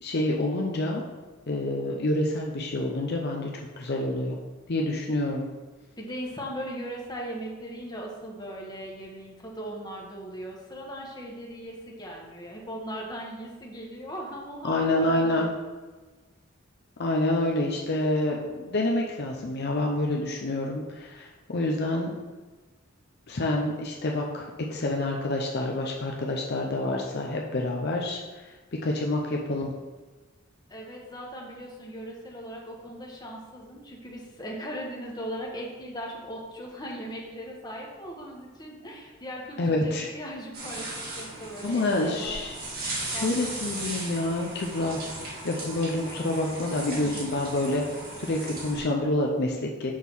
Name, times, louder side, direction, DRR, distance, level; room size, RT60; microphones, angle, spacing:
voice 1, 0.0-1.0 1.5-4.4 4.7-5.5 14.6-15.5 17.0-22.2 23.3-28.5 28.8-29.7 39.6-40.1 41.6-42.7 43.1-47.9 48.2-49.9, left 1 dB, 55° left, 0 dB, 0.7 m, -28 dB
voice 2, 6.0-15.5 30.7-42.4 43.1-43.6 46.7-47.2, equal, 20° left, -2 dB, 1.2 m, -38 dB
sound 1, 40.5-48.8, right 2 dB, 50° right, 1.7 m, -37 dB
6.3 x 3.6 x 6.1 m, 1.3 s
head